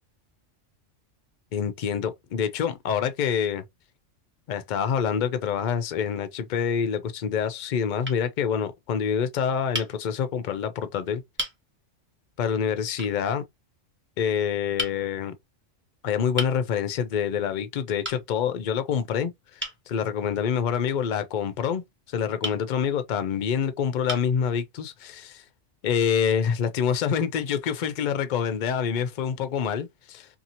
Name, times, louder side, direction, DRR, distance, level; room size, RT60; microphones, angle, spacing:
voice 1, 1.5-3.6 4.5-11.2 12.4-13.4 14.2-15.3 16.0-21.8 22.1-25.4 25.8-30.3, left 7 dB, 55° left, 0.5 m, -26 dB
sound 1, 8.0-8.2 9.7-9.9 10.8-10.9 11.4-11.6 13.0-13.2 14.8-15.0 16.4-16.6 18.0-18.2 19.6-19.8 22.4-22.6 23.5-23.6 24.1-24.4, equal, 10° right, 0.8 m, -33 dB
2.7 x 2.7 x 2.7 m
omnidirectional pair, 1.3 m